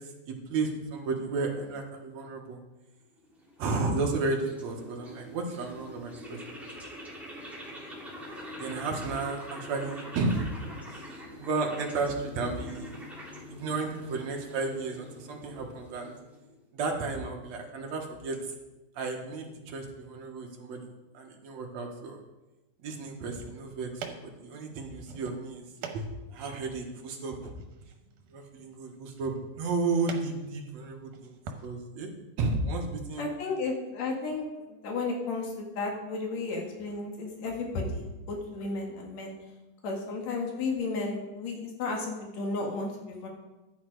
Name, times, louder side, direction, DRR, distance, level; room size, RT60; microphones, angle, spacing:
voice 1, 0.3-2.6 3.6-6.6 8.6-10.5 10.9-12.9 13.5-16.2 16.7-18.4 19.0-20.9 21.1-22.2 22.8-25.6 25.9-26.0 26.3-27.5 28.3-31.4 31.6-32.1 32.4-33.3, right 3 dB, 65° right, 1 dB, 2.7 m, -33 dB
sound 1, 3.2-16.6, left 1 dB, ahead, 2.1 m, -45 dB
sound 2, 23.2-31.7, right 5 dB, 85° right, 2.7 m, -46 dB
voice 2, 33.2-39.4 39.8-43.3, left 3 dB, 60° left, 1 dB, 3.1 m, -33 dB
12.0 x 9.9 x 4.8 m, 1.0 s
omnidirectional pair, 3.5 m